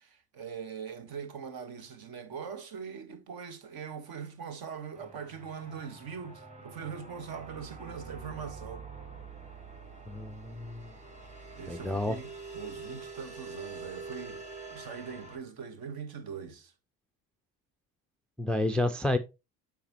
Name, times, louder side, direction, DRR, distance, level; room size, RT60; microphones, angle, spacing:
voice 1, 0.0-8.9 11.5-16.7, right 6 dB, 45° right, 1.6 m, -42 dB
sound 1, 4.9-15.4, right 4 dB, 15° right, 3.1 m, -46 dB
voice 2, 10.1-10.9 11.7-12.2 18.4-19.2, left 1 dB, ahead, 0.4 m, -30 dB
8.5 x 5.2 x 3.0 m
figure-of-eight pair, 65°, 50 cm